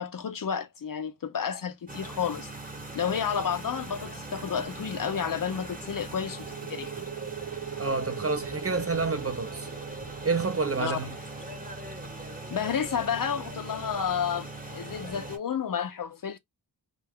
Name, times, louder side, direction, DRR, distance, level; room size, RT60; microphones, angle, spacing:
voice 1, 0.0-2.5 2.9-6.9 10.8-11.0 12.5-16.4, left 7 dB, 50° left, 0.5 m, -31 dB
sound 1, 1.9-15.4, right 2 dB, 20° right, 1.0 m, -41 dB
sound 2, 6.3-13.7, right 10 dB, 60° right, 0.9 m, -41 dB
voice 2, 7.8-9.7 10.2-11.2, right 4 dB, 35° right, 0.4 m, -28 dB
2.3 x 2.2 x 3.4 m
wide cardioid pair, 60°, 44 cm